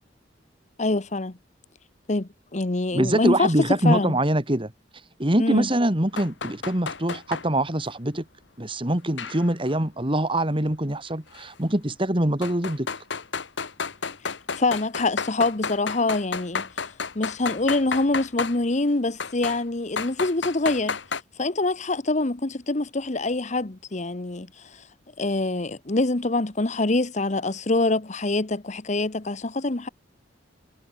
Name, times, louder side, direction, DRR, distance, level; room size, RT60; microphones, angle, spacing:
voice 1, 0.8-1.4 2.1-3.5 3.8-4.2 5.4-5.7 14.5-16.7 17.1-21.0 21.4-24.5 25.2-29.9, left 2 dB, 40° left, 1.1 m, -25 dB
voice 2, 2.9-4.7 5.2-8.3 8.6-12.9, right 1 dB, 30° right, 2.5 m, -24 dB
sound 1, 6.2-7.5 9.2-9.7 11.3-11.5 12.4-18.6 19.2-19.6 20.0-21.2, left 5 dB, 75° left, 1.5 m, -31 dB
head